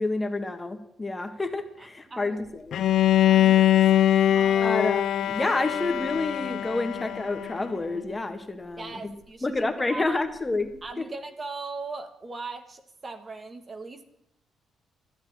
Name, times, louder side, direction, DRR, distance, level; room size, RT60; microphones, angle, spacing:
voice 1, 0.0-2.8 4.6-8.9 9.4-10.7 11.0-11.1, left 2 dB, 20° left, 7 dB, 1.6 m, -29 dB
voice 2, 1.8-2.4 3.3-4.7 8.8-9.5 9.8-10.2 10.8-14.1, right 3 dB, 35° right, 8 dB, 1.5 m, -39 dB
Bowed string instrument, 2.7-7.7, left 12 dB, 70° left, 0.5 m, -22 dB
13.5 x 8.4 x 8.7 m, 0.80 s
cardioid pair, 90°, 0 cm